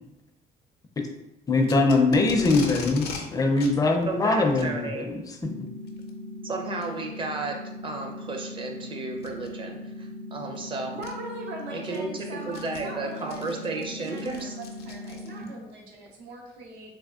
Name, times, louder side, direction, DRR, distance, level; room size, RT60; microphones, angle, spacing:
voice 1, 1.5-5.5, left 3 dB, 20° left, 4 dB, 0.4 m, -22 dB
Packing tape duct tape, 1.6-3.2 3.6-3.7 4.5-4.7 5.9-6.1 6.8-6.9 7.5-7.6 9.2-9.5 10.5-10.6 11.0-11.1 11.6-15.5, left 4 dB, 75° left, 0.5 m, -39 dB
voice 2, 4.1-5.1 6.4-10.9 11.7-14.5, right 3 dB, 30° right, 2 dB, 0.5 m, -33 dB
sound 1, 5.4-15.4, left 1 dB, 60° right, 1.3 m, -40 dB
voice 3, 10.9-16.9, right 2 dB, 85° right, 0 dB, 0.7 m, -41 dB
3.4 x 2.2 x 2.3 m, 0.92 s
cardioid pair, 110°, 17 cm